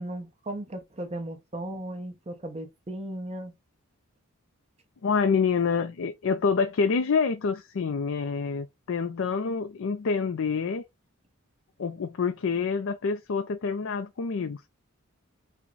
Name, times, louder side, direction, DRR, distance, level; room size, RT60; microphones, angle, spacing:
voice 1, 0.0-3.5, right 1 dB, 30° right, 0.8 m, -36 dB
voice 2, 5.0-10.8 11.8-14.7, left 5 dB, 65° left, 0.4 m, -27 dB
5.8 x 2.2 x 3.8 m
head